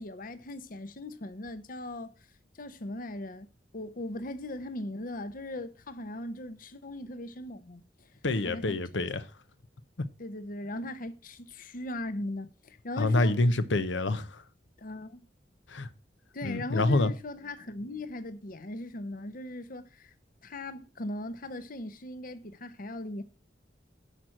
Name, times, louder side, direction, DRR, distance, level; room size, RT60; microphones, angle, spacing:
voice 1, 0.0-2.1 2.5-3.5 3.7-8.8 10.2-13.3 14.8-15.2 16.3-20.1 20.4-23.2, left 2 dB, 50° left, 0.8 m, -39 dB
voice 2, 8.2-9.2 13.0-14.4 15.7-15.9 16.4-17.1, left 2 dB, 85° left, 0.9 m, -27 dB
11.0 x 4.5 x 7.4 m
head